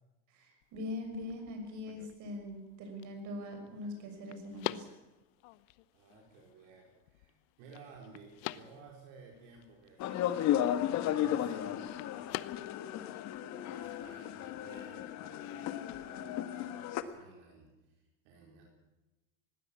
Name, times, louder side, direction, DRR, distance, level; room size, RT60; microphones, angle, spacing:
voice 1, 0.3-5.0, left 2 dB, 50° right, 5 dB, 6.4 m, -42 dB
sound 1, 0.6-16.1, left 17 dB, 75° left, 0.9 m, -48 dB
voice 2, 5.9-10.7 11.1-12.6 13.7-18.6, right 4 dB, 75° right, 0 dB, 4.5 m, -56 dB
sound 2, 10.0-17.0, left 11 dB, 45° left, 1.4 m, -34 dB
19.5 x 16.5 x 8.5 m, 1.1 s
cardioid pair, 145°, 37 cm